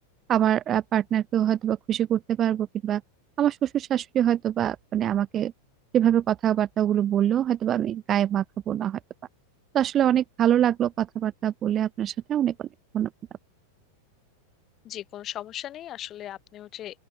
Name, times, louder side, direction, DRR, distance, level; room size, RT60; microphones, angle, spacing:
voice 1, 0.3-3.0 3.4-5.5 5.9-9.0 9.7-12.7 12.9-13.1, right 10 dB, 30° right, 0.4 m, -24 dB
voice 2, 14.8-17.0, left 12 dB, 30° left, 0.5 m, -38 dB
open air
figure-of-eight pair, 90°, 0 cm